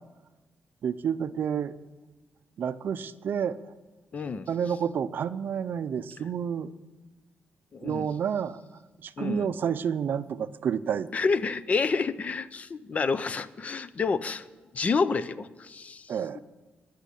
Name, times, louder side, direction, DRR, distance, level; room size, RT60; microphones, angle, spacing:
voice 1, 0.8-1.7 2.6-3.7 4.5-6.7 7.8-8.6 9.0-11.1 16.1-16.4, right 8 dB, 60° right, 14 dB, 0.5 m, -29 dB
voice 2, 4.1-4.5 7.7-8.1 9.2-9.5 11.1-14.5 14.7-16.4, left 4 dB, 35° left, 15 dB, 0.5 m, -29 dB
18.5 x 6.3 x 8.4 m, 1.2 s
wide cardioid pair, 145°, 4 cm